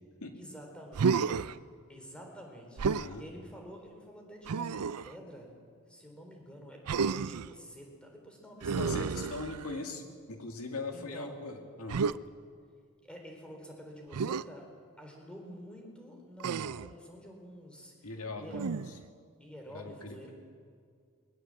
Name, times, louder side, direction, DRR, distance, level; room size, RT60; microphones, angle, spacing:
voice 1, 0.3-1.3 1.9-9.0 10.9-11.4 13.0-14.6 15.0-18.1 18.4-18.7 19.4-20.3, equal, 5° left, 1 dB, 3.8 m, -49 dB
Human voice, 0.9-1.6 2.8-3.1 4.5-5.1 6.9-7.5 8.6-9.8 11.9-12.2 14.1-14.4 16.4-16.9 18.5-19.0, right 5 dB, 90° right, 0.5 m, -31 dB
voice 2, 2.9-3.2 8.8-12.0 18.0-18.6 19.7-20.3, left 3 dB, 70° left, 4 dB, 2.2 m, -40 dB
20.5 x 19.5 x 7.7 m, 2.1 s
head